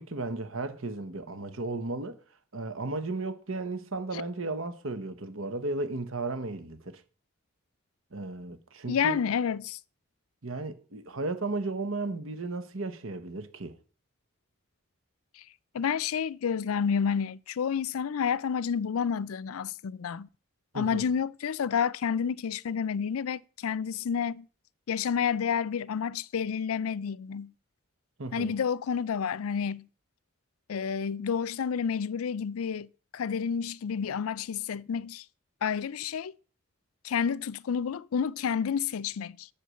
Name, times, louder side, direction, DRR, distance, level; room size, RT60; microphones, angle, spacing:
voice 1, 0.0-2.2 2.5-7.0 8.1-9.2 10.4-13.8 20.7-21.1 28.2-28.5, right 2 dB, 70° right, 1.3 m, -34 dB
voice 2, 8.9-9.8 15.4-15.5 15.7-20.3 20.7-24.5 24.9-27.5 28.3-29.9 30.7-35.2 35.6-36.3 37.0-39.5, left 7 dB, 80° left, 0.4 m, -30 dB
8.3 x 6.4 x 7.7 m
head